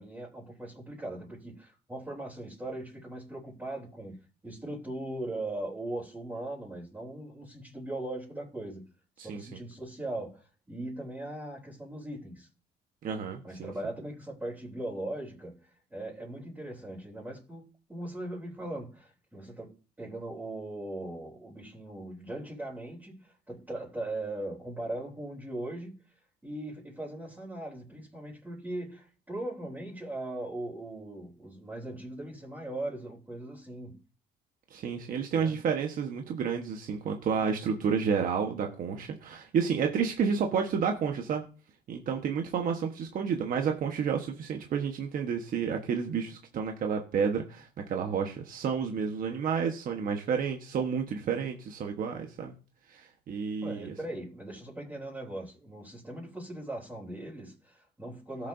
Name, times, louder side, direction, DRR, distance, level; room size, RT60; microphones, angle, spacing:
voice 1, 0.0-4.2 4.4-8.9 9.2-12.5 13.4-17.6 17.9-26.0 26.4-34.0 35.3-35.5 53.6-58.5, right 1 dB, 10° right, 3.6 m, -39 dB
voice 2, 9.2-9.5 13.0-13.7 34.7-41.4 41.9-52.5 52.9-53.9, right 6 dB, 55° right, 1.4 m, -30 dB
16.5 x 7.4 x 2.7 m
cardioid pair, 110°, 17 cm